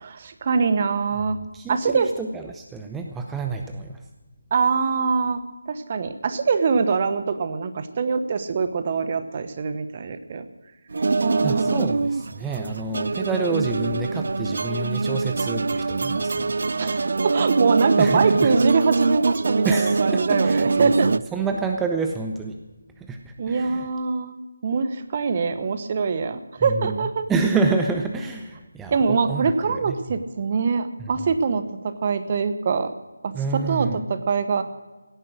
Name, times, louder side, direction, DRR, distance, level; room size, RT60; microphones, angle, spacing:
voice 1, 0.0-1.4 1.7-2.1 4.5-5.4 5.7-10.4 11.2-12.0 16.8-21.1 23.4-24.4 24.6-27.3 28.9-32.9 33.2-34.6, right 5 dB, 35° right, 11 dB, 1.0 m, -24 dB
voice 2, 1.5-4.0 11.4-16.5 18.0-18.5 19.6-22.6 23.0-23.9 26.6-30.0 33.3-34.0, right 4 dB, 5° right, 4 dB, 0.6 m, -28 dB
sound 1, 10.9-21.2, right 3 dB, 55° right, 0.4 m, -23 dB
17.0 x 10.0 x 6.3 m, 1.2 s
figure-of-eight pair, 160°, 0 cm